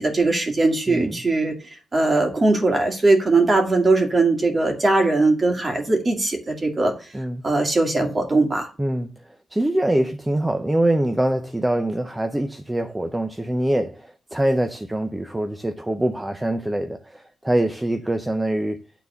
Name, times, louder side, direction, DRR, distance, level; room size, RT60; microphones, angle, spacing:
voice 1, 0.0-1.5 1.9-6.9 7.4-8.7, right 2 dB, 30° right, 2.2 m, -20 dB
voice 2, 0.9-1.2 7.1-7.4 8.8-9.1 9.5-18.8, right 1 dB, 10° right, 0.6 m, -24 dB
9.6 x 4.0 x 6.9 m
wide cardioid pair, 125°, 0 cm